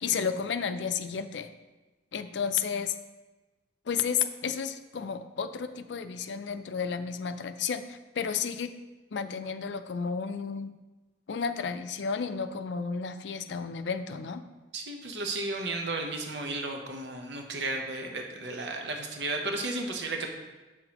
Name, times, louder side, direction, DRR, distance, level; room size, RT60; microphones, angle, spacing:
voice 1, 0.0-1.5 2.1-2.9 3.9-8.7 9.1-10.7 11.3-14.4, left 6 dB, 90° left, 10 dB, 0.5 m, -32 dB
voice 2, 14.7-20.3, right 2 dB, 80° right, 3 dB, 0.8 m, -33 dB
7.7 x 5.9 x 2.9 m, 1.2 s
head